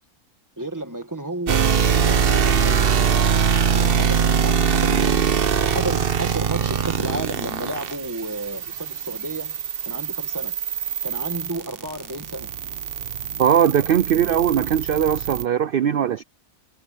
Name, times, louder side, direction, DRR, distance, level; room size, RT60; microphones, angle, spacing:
voice 1, 0.6-3.1 3.7-10.6 11.0-12.5, right 2 dB, 10° right, 1.9 m, -32 dB
sound 1, 1.5-15.4, right 7 dB, 45° right, 1.0 m, -23 dB
voice 2, 13.4-16.2, right 9 dB, 80° right, 0.5 m, -20 dB
omnidirectional pair, 1.6 m